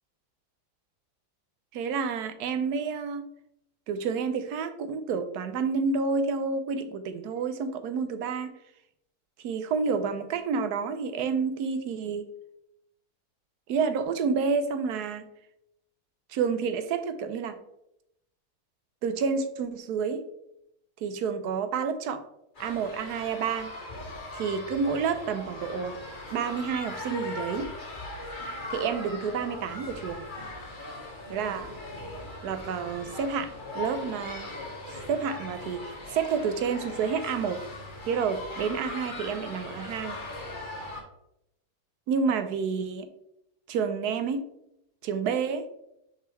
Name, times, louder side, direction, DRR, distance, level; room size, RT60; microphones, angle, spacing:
voice 1, 1.7-3.3 3.9-8.5 9.4-12.3 13.7-15.2 16.3-17.6 19.0-20.2 21.0-22.2 22.6-23.7 24.3-26.0 26.3-27.7 28.7-30.3 31.3-31.8 32.4-34.5 34.9-37.6 38.1-40.2 42.1-43.1 43.7-44.5 45.0-45.7, right 5 dB, 85° right, 10 dB, 1.2 m, -29 dB
sound 1, 22.5-41.0, left 2 dB, 35° left, 1.3 m, -39 dB
6.1 x 5.5 x 3.1 m, 0.80 s
omnidirectional pair, 1.6 m